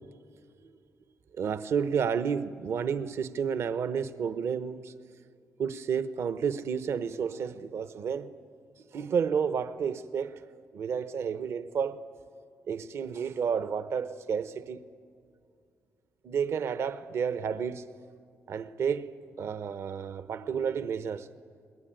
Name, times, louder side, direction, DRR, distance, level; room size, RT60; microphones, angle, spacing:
voice 1, 1.4-4.9 5.6-8.3 8.9-10.4 10.7-12.0 12.7-14.8 16.2-17.8 18.5-19.1 19.4-21.3, right 7 dB, 60° right, 0.8 m, -31 dB
29.5 x 20.5 x 9.0 m
cardioid pair, 125°, 5 cm